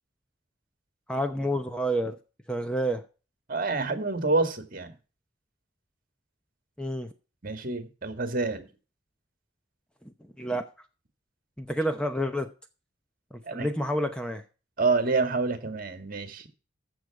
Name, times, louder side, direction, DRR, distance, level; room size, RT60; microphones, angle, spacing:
voice 1, 1.1-2.2 2.5-3.0 6.8-7.1 10.4-10.7 11.6-12.5 13.3-14.4, equal, 5° left, 0.7 m, -29 dB
voice 2, 3.5-4.9 7.4-8.6 13.5-13.7 14.8-16.5, right 3 dB, 45° right, 1.9 m, -27 dB
14.0 x 6.7 x 4.8 m
head